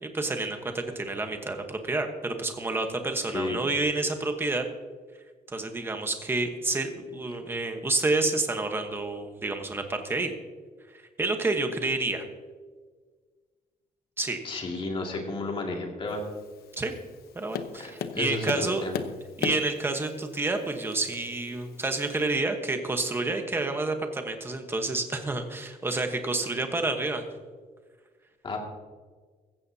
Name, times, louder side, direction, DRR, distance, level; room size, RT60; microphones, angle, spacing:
voice 1, 0.0-4.6 5.5-10.3 11.2-12.2 14.2-14.4 16.8-16.9 17.3-18.8 19.4-27.3, right 2 dB, 15° right, 5 dB, 1.1 m, -29 dB
voice 2, 14.4-16.2 17.8-19.0 28.4-28.6, left 2 dB, 35° left, 1 dB, 2.2 m, -32 dB
Tap, 16.1-22.3, left 7 dB, 90° left, 0.9 m, -39 dB
15.0 x 15.0 x 2.8 m, 1.5 s
cardioid pair, 180°, 15 cm